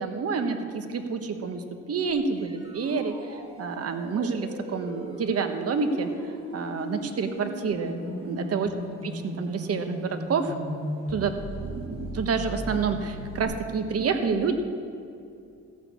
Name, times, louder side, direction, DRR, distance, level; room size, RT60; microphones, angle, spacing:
voice 1, 0.0-1.6 1.9-6.1 6.5-8.7 9.0-10.5 11.1-11.3 11.6-14.5, right 5 dB, 55° right, 7 dB, 1.2 m, -28 dB
sound 1, 2.1-13.4, equal, 20° right, 2.9 m, -37 dB
14.5 x 6.4 x 8.2 m, 2.4 s
cardioid pair, 90°, 30 cm